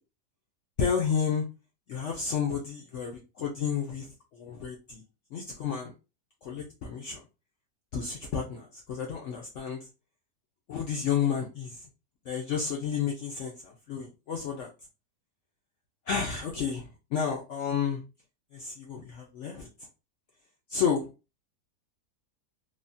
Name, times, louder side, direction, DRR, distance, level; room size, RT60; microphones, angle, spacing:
voice 1, 0.8-1.4 1.9-4.1 4.3-5.0 5.3-5.9 6.4-7.2 7.9-9.9 10.7-11.8 12.3-14.7 16.1-18.0 18.5-19.7 20.7-21.1, left 7 dB, 80° left, 0 dB, 0.6 m, -31 dB
3.4 x 2.1 x 2.5 m, 0.30 s
omnidirectional pair, 1.8 m